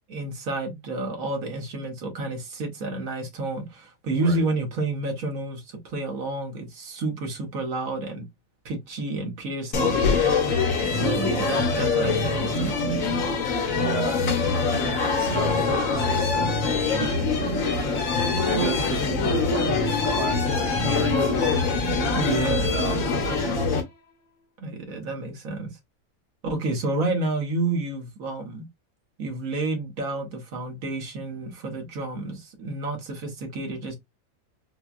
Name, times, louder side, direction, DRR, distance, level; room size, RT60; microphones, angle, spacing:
voice 1, 0.1-8.3 8.6-10.4 10.8-13.1 22.1-22.8 24.6-25.7 26.4-28.7 29.2-33.9, right 2 dB, 55° right, 1.4 m, -30 dB
sound 1, 9.7-23.8, left 4 dB, 60° left, 1.2 m, -24 dB
voice 2, 13.8-18.1 18.5-21.5 22.0-23.6, right 6 dB, 75° right, 1.6 m, -35 dB
4.3 x 2.3 x 2.4 m
omnidirectional pair, 1.8 m